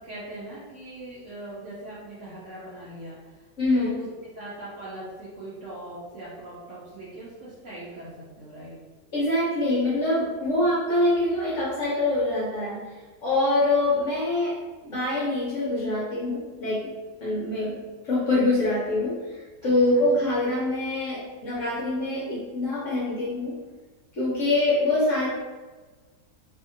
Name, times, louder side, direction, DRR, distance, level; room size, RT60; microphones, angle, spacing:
voice 1, 0.0-3.3 3.7-4.0 4.3-8.8 19.6-20.1, right 1 dB, 60° right, -8 dB, 0.8 m, -40 dB
voice 2, 3.6-3.9 9.1-12.8 13.2-14.6 14.8-16.9 17.2-17.8 18.0-23.5 24.1-25.3, left 2 dB, 60° left, -7 dB, 0.9 m, -24 dB
2.8 x 2.6 x 2.6 m, 1.3 s
omnidirectional pair, 1.9 m